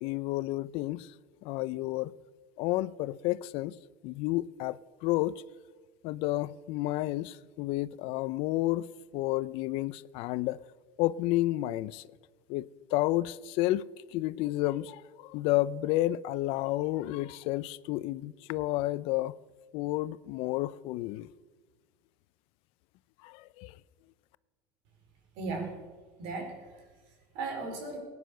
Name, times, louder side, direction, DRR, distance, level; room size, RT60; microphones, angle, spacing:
voice 1, 0.0-1.1 1.4-2.1 2.6-3.8 4.0-5.4 6.0-8.9 9.1-10.6 11.0-12.1 12.5-13.9 14.1-19.3 19.7-21.3 23.2-23.7, left 16 dB, 65° left, 0.5 m, -31 dB
voice 2, 25.3-25.8 26.2-28.0, right 3 dB, 70° right, 4.7 m, -37 dB
17.5 x 9.7 x 6.7 m
supercardioid pair, 115°, 10 cm